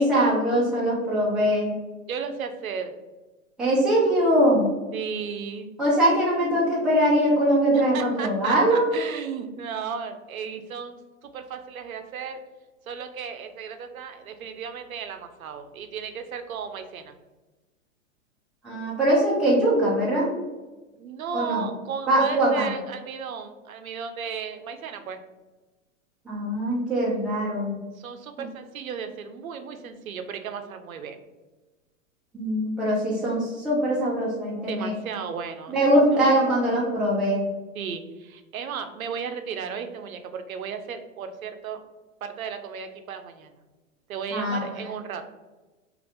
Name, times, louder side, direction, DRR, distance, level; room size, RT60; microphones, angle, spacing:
voice 1, 0.0-1.7 3.6-4.7 5.8-8.9 18.6-20.3 21.3-21.7 22.1-22.7 26.3-27.7 32.3-34.9 35.7-37.4 44.3-44.9, right 1 dB, ahead, -7 dB, 0.3 m, -22 dB
voice 2, 2.1-2.9 4.9-5.7 7.7-12.4 12.9-17.1 20.9-25.2 27.9-31.2 34.7-36.3 37.7-41.8 42.2-43.5 44.1-45.2, right 6 dB, 85° right, 7 dB, 0.5 m, -34 dB
3.2 x 2.5 x 2.5 m, 1.2 s
hypercardioid pair, 115°, 40 cm